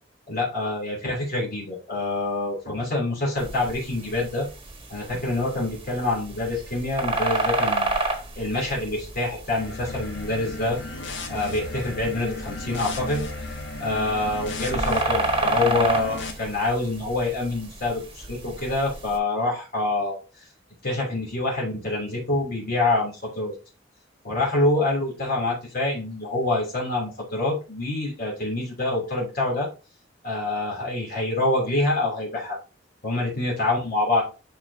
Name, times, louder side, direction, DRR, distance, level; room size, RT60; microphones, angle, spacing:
voice 1, 0.3-4.5 4.9-8.1 8.4-10.8 11.3-13.2 13.8-20.5 20.8-23.5 24.2-29.7 30.2-32.6 33.0-34.2, left 2 dB, 55° left, -3 dB, 3.1 m, -26 dB
sound 1, 3.4-19.2, right 2 dB, 30° right, 1.3 m, -31 dB
sound 2, 9.5-16.3, left 2 dB, 80° left, 1.5 m, -35 dB
10.5 x 4.5 x 2.8 m, 0.32 s
head